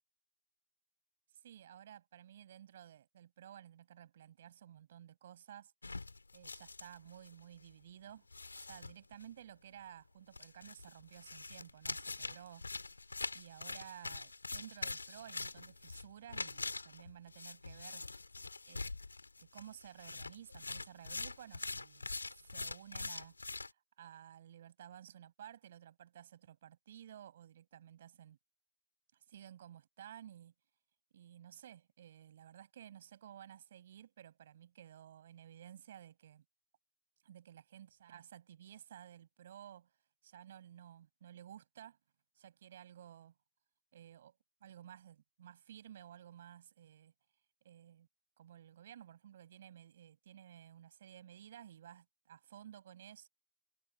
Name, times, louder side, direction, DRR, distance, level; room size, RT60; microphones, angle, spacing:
voice 1, 1.4-5.7 6.3-8.3 8.6-12.6 13.3-18.1 18.7-19.0 19.4-23.3 23.6-28.4 29.1-30.5 31.1-36.4 37.2-39.9 40.2-42.0 42.3-43.3 43.9-47.1 47.6-48.1 48.4-53.3, right 10 dB, 75° right, 6.4 m, -55 dB
sound 1, 5.8-7.4 7.6-7.7 8.3-9.2 10.3-23.7, left 3 dB, 90° left, 3.6 m, -44 dB
figure-of-eight pair, 80°, 0 cm